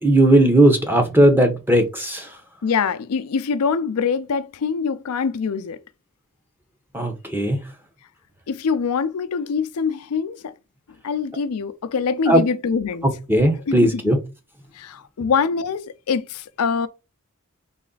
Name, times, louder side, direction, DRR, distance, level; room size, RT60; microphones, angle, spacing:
voice 1, 0.0-2.3 6.9-7.6 12.3-12.4 13.3-14.2, right 1 dB, 10° right, 0.9 m, -17 dB
voice 2, 2.6-5.8 8.5-10.5 11.0-13.1 13.7-14.1 14.7-16.9, left 5 dB, 80° left, 0.5 m, -24 dB
4.1 x 3.2 x 3.9 m
head